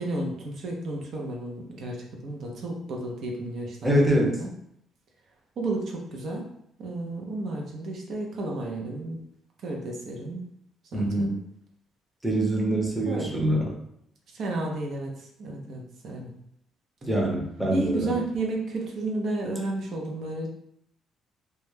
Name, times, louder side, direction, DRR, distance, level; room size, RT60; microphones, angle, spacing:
voice 1, 0.0-4.5 5.6-6.4 6.8-9.2 9.6-10.5 10.9-11.4 13.0-13.4 14.3-16.3 17.7-20.5, right 2 dB, 60° right, 0 dB, 0.5 m, -32 dB
voice 2, 3.8-4.3 10.9-11.4 12.2-13.6 17.0-18.1, right 1 dB, 5° right, -2 dB, 0.6 m, -24 dB
2.2 x 2.1 x 3.1 m, 0.71 s
cardioid pair, 100°, 0 cm